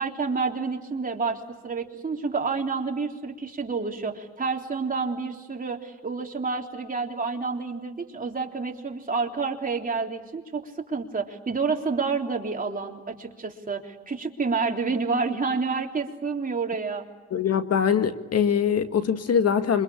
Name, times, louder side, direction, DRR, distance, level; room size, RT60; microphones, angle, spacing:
voice 1, 0.0-17.1, right 4 dB, 30° right, 1 dB, 3.7 m, -29 dB
voice 2, 17.3-19.8, left 7 dB, 55° left, 8 dB, 1.9 m, -23 dB
27.5 x 25.0 x 8.6 m, 1.2 s
cardioid pair, 90°, 30 cm